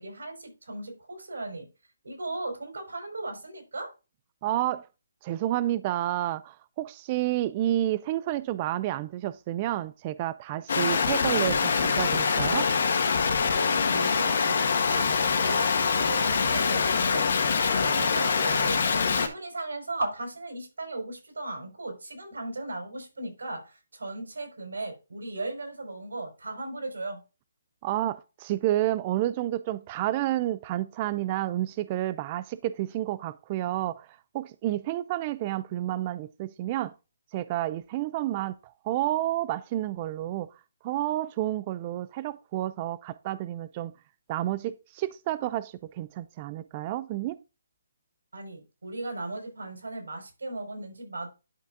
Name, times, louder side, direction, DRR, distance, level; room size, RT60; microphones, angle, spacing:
voice 1, 0.0-1.7 2.0-3.9 13.5-15.1 15.4-27.2 48.3-51.3, right 2 dB, 90° right, 4.9 m, -37 dB
voice 2, 4.4-4.9 5.2-12.7 27.8-34.1 34.3-36.9 37.3-40.5 40.8-43.9 44.3-47.4, right 14 dB, 25° right, 0.3 m, -30 dB
sound 1, 10.7-19.3, left 5 dB, 55° left, 1.6 m, -24 dB
11.0 x 5.9 x 2.6 m
hypercardioid pair, 165°, 0 cm